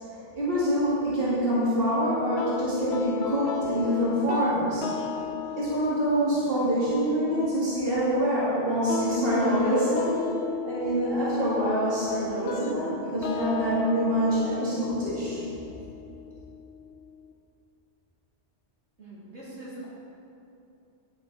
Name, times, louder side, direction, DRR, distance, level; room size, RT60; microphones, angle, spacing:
voice 1, 0.3-4.9 5.6-10.1 10.6-15.4, equal, 50° right, -10 dB, 2.7 m, -25 dB
sound 1, 2.4-17.3, left 6 dB, 70° left, 0.9 m, -36 dB
voice 2, 19.0-19.8, right 1 dB, 75° right, -9 dB, 3.3 m, -42 dB
10.5 x 10.5 x 4.1 m, 2.8 s
omnidirectional pair, 1.2 m